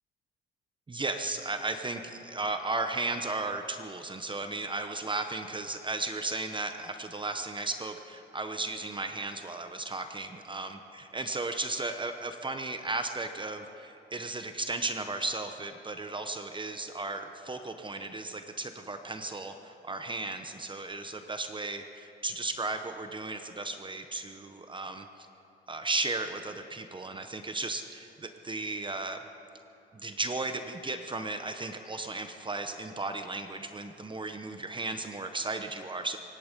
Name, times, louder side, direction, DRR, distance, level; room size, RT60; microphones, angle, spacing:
voice 1, 0.9-25.1 25.7-29.2 29.9-36.2, right 2 dB, 25° right, 7 dB, 1.0 m, -35 dB
24.5 x 11.0 x 5.3 m, 2.9 s
cardioid pair, 90°, 20 cm